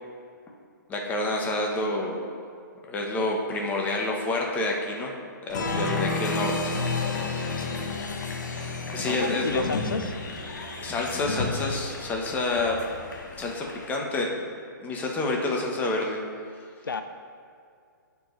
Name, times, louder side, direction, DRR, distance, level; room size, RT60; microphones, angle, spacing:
voice 1, 0.9-2.3 2.9-5.1 5.4-6.7 7.1-7.7 8.9-9.6 10.8-12.8 13.4-14.3 14.8-16.2, left 2 dB, 15° left, -1 dB, 1.0 m, -28 dB
Applause, 5.5-13.9, left 3 dB, 60° left, 1.1 m, -31 dB
voice 2, 7.6-8.0 9.0-10.2 16.8-17.0, left 4 dB, 90° left, 8 dB, 0.5 m, -32 dB
13.5 x 4.6 x 3.2 m, 2.3 s
hypercardioid pair, 135°, 11 cm